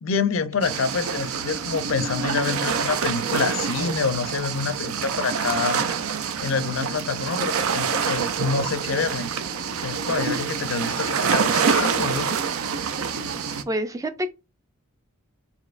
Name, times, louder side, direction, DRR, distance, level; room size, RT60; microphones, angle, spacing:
voice 1, 0.0-5.9 6.4-9.3 9.8-12.4 13.2-13.3, left 5 dB, 65° left, 0.5 m, -27 dB
sound 1, 0.6-13.6, right 6 dB, 80° right, 0.5 m, -26 dB
voice 2, 13.7-14.3, equal, 15° right, 0.3 m, -27 dB
4.1 x 2.9 x 2.4 m
head